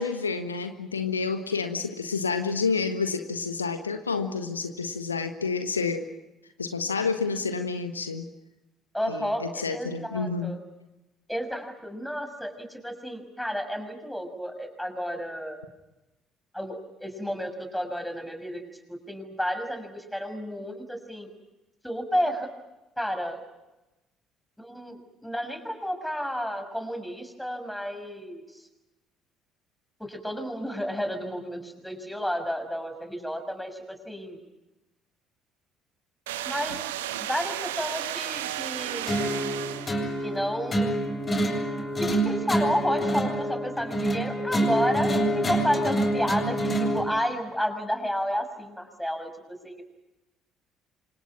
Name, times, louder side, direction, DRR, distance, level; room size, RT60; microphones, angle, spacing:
voice 1, 0.0-6.1 6.6-8.2 9.0-10.5, left 4 dB, 85° left, 8 dB, 1.4 m, -29 dB
voice 2, 8.9-10.6 11.3-15.6 16.5-18.6 18.9-21.3 21.8-22.5 23.0-23.4 24.6-28.7 30.0-34.4 36.4-36.8 37.3-39.3 40.2-41.0 42.0-49.8, equal, 5° left, 7 dB, 6.4 m, -31 dB
sound 1, 36.3-40.3, right 13 dB, 75° right, 1.4 m, -33 dB
sound 2, 39.1-47.1, right 1 dB, 30° left, 7.7 m, -27 dB
29.0 x 26.0 x 6.0 m, 0.99 s
figure-of-eight pair, 50°, 0 cm